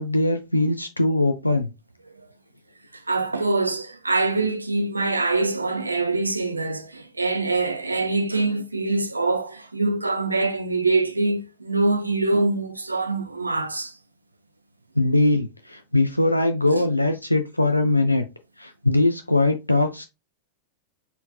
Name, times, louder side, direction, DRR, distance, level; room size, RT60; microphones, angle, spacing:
voice 1, 0.0-1.7 15.0-18.2 18.6-20.0, left 2 dB, 85° left, 0.4 m, -21 dB
voice 2, 2.9-13.9 16.7-16.8, right 3 dB, 80° right, 0.6 m, -24 dB
4.1 x 4.0 x 2.3 m
figure-of-eight pair, 90°, 0 cm